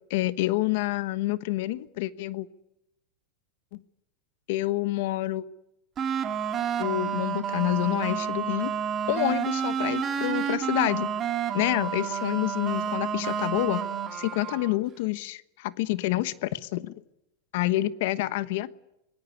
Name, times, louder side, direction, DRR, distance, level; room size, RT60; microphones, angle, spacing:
voice 1, 0.1-2.5 3.7-3.8 4.5-5.4 6.8-8.7 9.1-11.1 11.5-13.8 14.1-16.9 17.5-18.7, left 17 dB, 65° left, 15 dB, 1.1 m, -28 dB
sound 1, 6.0-14.8, right 8 dB, 30° right, 2.7 m, -30 dB
23.5 x 20.0 x 9.7 m, 0.88 s
supercardioid pair, 135°, 0 cm